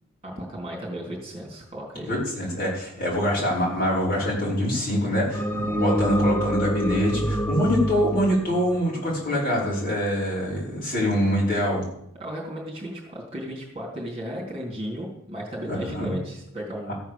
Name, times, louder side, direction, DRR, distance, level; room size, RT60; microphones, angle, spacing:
voice 1, 0.2-2.1 12.2-16.9, equal, 25° right, -1 dB, 3.6 m, -34 dB
voice 2, 2.1-11.8 15.7-16.1 16.9-17.0, equal, 40° left, -5 dB, 5.9 m, -24 dB
sound 1, 5.3-9.7, equal, 10° left, 0.8 m, -26 dB
14.5 x 9.2 x 7.2 m, 0.77 s
head